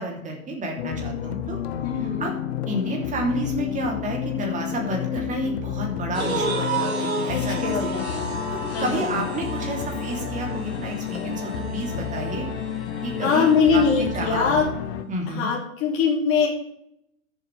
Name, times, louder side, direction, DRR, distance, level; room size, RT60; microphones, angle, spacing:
voice 1, 0.0-1.6 2.2-2.3 2.7-7.9 8.5-12.4 13.0-14.6 15.1-15.5, right 1 dB, 20° right, 0 dB, 3.3 m, -30 dB
sound 1, 0.8-15.0, left 9 dB, 50° left, 1.1 m, -30 dB
voice 2, 1.8-2.3 7.3-9.2 13.2-14.7 15.3-16.5, left 5 dB, 30° left, -2 dB, 3.2 m, -23 dB
sound 2, 6.1-14.5, right 4 dB, 80° right, 4.0 m, -33 dB
14.0 x 8.0 x 3.5 m, 0.74 s
hypercardioid pair, 110°, 41 cm